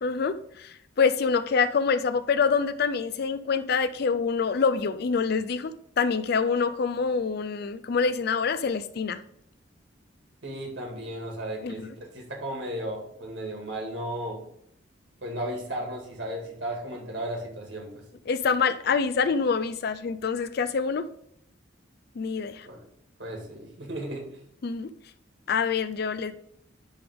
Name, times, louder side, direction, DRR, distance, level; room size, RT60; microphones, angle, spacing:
voice 1, 0.0-9.2 11.6-11.9 18.3-21.1 22.2-22.7 24.6-24.9 25.5-26.3, left 5 dB, 50° left, 13 dB, 0.4 m, -26 dB
voice 2, 10.4-14.5 15.2-18.0 22.7-22.8 23.2-24.3, right 1 dB, 60° right, 1 dB, 2.0 m, -35 dB
10.5 x 3.5 x 3.6 m, 0.73 s
head